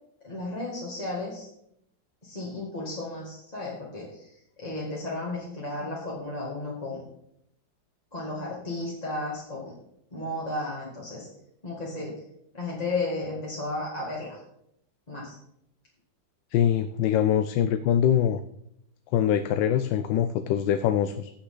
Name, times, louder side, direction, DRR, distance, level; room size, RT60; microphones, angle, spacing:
voice 1, 0.2-1.5 2.2-7.0 8.1-9.7 10.1-11.3 11.6-12.2 12.5-14.4 15.1-15.4, left 2 dB, 20° left, -6 dB, 2.3 m, -34 dB
voice 2, 16.5-18.4 19.1-21.3, left 9 dB, 85° left, 10 dB, 1.3 m, -23 dB
15.5 x 6.5 x 3.9 m, 0.75 s
omnidirectional pair, 2.0 m